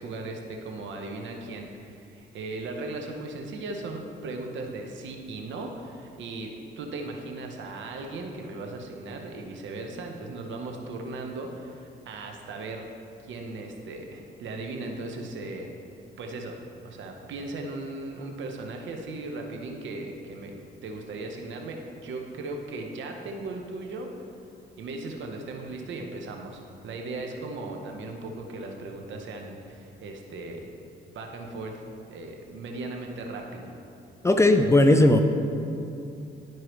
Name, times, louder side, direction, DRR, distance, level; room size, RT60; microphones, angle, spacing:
voice 1, 0.0-12.9 13.2-15.7 16.2-16.6 16.8-20.5 20.8-24.2 24.8-30.7 31.1-33.7, right 2 dB, 70° right, 2 dB, 1.0 m, -37 dB
voice 2, 34.2-35.2, left 1 dB, 15° left, 6 dB, 0.5 m, -17 dB
12.0 x 4.6 x 3.1 m, 2.7 s
cardioid pair, 90°, 20 cm